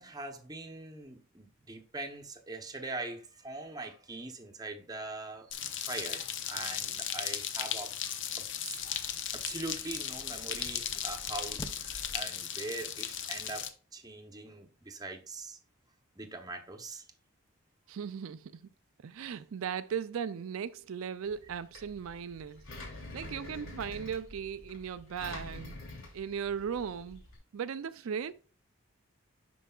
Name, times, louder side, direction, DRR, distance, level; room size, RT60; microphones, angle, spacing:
voice 1, 0.0-8.1 8.4-8.8 9.3-15.6 16.2-17.1, right 2 dB, 20° right, 0.8 m, -42 dB
sound 1, 5.5-13.7, left 9 dB, 60° left, 0.7 m, -36 dB
sound 2, 8.8-12.2, equal, 15° left, 0.6 m, -49 dB
voice 2, 17.9-18.7 19.0-22.7 23.1-25.8 26.1-27.2 27.5-28.3, right 7 dB, 80° right, 0.4 m, -37 dB
Engine, 21.3-27.4, left 1 dB, 75° left, 3.0 m, -47 dB
11.0 x 4.6 x 2.3 m
head